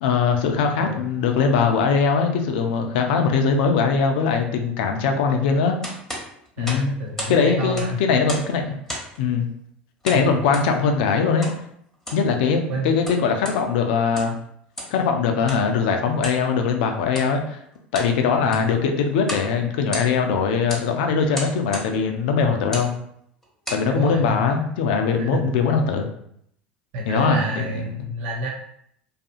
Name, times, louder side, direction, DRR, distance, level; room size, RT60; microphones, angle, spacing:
voice 1, 0.0-5.8 6.6-6.9 7.3-8.8 9.2-9.5 10.0-11.5 12.1-14.4 14.9-17.6 17.9-22.9 23.7-26.1 27.1-27.7, left 5 dB, 70° left, 4 dB, 0.4 m, -21 dB
sound 1, 5.8-7.4 7.6-8.5 8.9-9.2 10.0-10.7 11.4-11.6 11.9-12.3 12.8-13.6 14.0-14.4 14.7-15.0 15.5-15.6 16.2-16.4 17.1-17.3 17.7-18.1 18.4-18.7 19.2-19.5 19.8-20.3 20.7-20.9 21.3-21.9 22.6-22.9 23.4-23.9, equal, 5° left, 1.0 m, -33 dB
voice 2, 6.6-8.0 10.1-10.3 12.7-12.9 18.3-18.6 23.9-24.5 25.2-25.4 26.9-28.5, right 1 dB, 65° right, -2 dB, 0.6 m, -29 dB
2.6 x 2.4 x 2.5 m, 0.70 s
hypercardioid pair, 80°, 5 cm